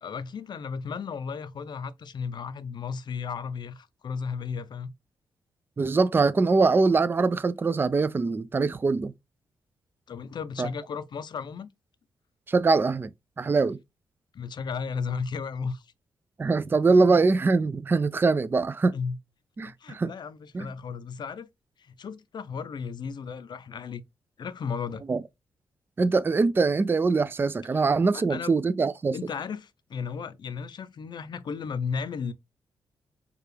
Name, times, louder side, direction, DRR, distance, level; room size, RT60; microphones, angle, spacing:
voice 1, 0.0-4.9 10.1-11.7 14.3-15.9 16.9-17.1 18.9-19.2 19.6-21.5 21.8-24.0 24.4-25.0 27.7-28.5 29.1-32.3, left 6 dB, 55° left, 0.5 m, -34 dB
voice 2, 5.8-9.1 10.6-10.7 12.5-13.1 13.4-13.8 16.4-19.0 19.6-20.1 20.5-20.7 25.1-25.2 26.0-29.2, right 4 dB, 25° right, 0.3 m, -23 dB
4.7 x 2.4 x 3.2 m
cardioid pair, 75°, 9 cm